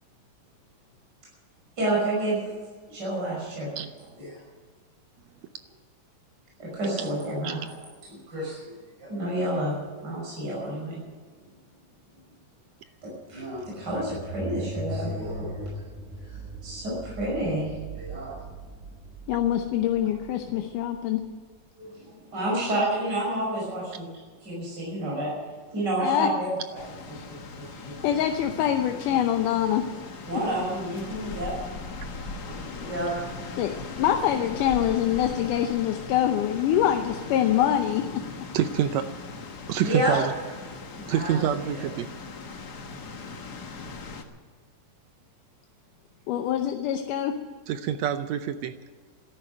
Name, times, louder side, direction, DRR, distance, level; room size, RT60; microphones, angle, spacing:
voice 1, 1.8-2.5 2.9-3.7 4.2-4.4 6.6-7.6 8.1-8.7 9.0-9.7 10.0-11.0 13.0-15.8 16.6-18.4 21.8-24.1 24.4-25.3 25.7-26.8 27.3-27.9 30.2-31.5 32.4-33.1 39.8-40.2 41.0-41.4, right 1 dB, 30° right, -4 dB, 6.2 m, -30 dB
sound 1, 13.2-21.5, right 1 dB, 10° right, 5.6 m, -39 dB
voice 2, 19.3-21.2 26.0-26.3 27.1-27.2 27.7-29.8 30.3-30.4 33.6-38.2 46.3-47.4, left 10 dB, 85° left, 5 dB, 2.4 m, -25 dB
sound 2, 26.7-44.2, left 3 dB, 50° left, 1.2 m, -39 dB
voice 3, 38.5-39.1 39.7-40.3 41.1-42.1 47.7-48.7, right 9 dB, 75° right, 10 dB, 1.7 m, -26 dB
13.0 x 11.5 x 9.0 m, 1.5 s
omnidirectional pair, 3.7 m